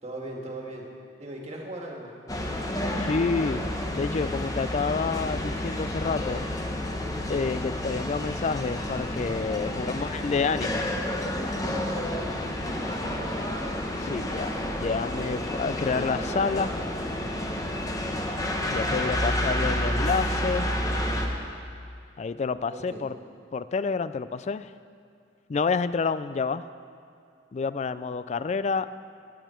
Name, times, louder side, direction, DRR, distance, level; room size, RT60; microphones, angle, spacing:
voice 1, 0.0-0.9 1.2-2.1 9.7-10.1 11.7-12.3 12.7-13.4 22.7-23.1, right 1 dB, 35° right, -1 dB, 1.8 m, -39 dB
sound 1, 2.3-21.3, left 1 dB, 20° left, 1.0 m, -30 dB
voice 2, 3.0-3.6 3.9-6.4 7.3-10.9 14.0-14.5 14.8-16.7 18.7-20.7 22.2-23.1 23.5-24.7 25.5-26.6 27.5-28.9, left 4 dB, 40° left, 14 dB, 0.3 m, -28 dB
16.0 x 10.5 x 4.4 m, 2.3 s
head